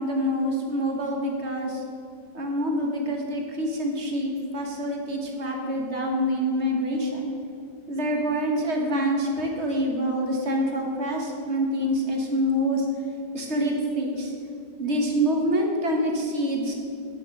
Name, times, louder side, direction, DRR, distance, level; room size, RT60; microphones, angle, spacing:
voice 1, 0.0-1.8 2.3-7.3 7.9-12.9 13.3-14.3 14.8-16.7, equal, 45° right, 1 dB, 1.5 m, -26 dB
9.3 x 7.2 x 6.6 m, 2.3 s
omnidirectional pair, 1.8 m